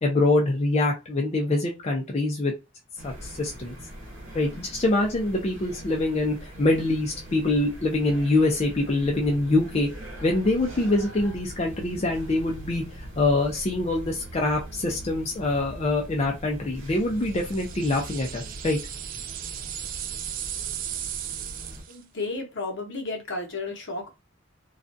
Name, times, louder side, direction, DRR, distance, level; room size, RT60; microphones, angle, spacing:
voice 1, 0.0-2.5 3.0-3.8 4.3-9.9 10.2-18.8, left 2 dB, 30° left, 0.4 m, -24 dB
sound 1, 3.0-21.8, right 1 dB, 75° right, 0.9 m, -42 dB
sound 2, 17.2-22.0, right 11 dB, 45° right, 0.3 m, -36 dB
voice 2, 21.9-24.1, left 3 dB, 65° left, 0.8 m, -33 dB
2.4 x 2.2 x 2.5 m
head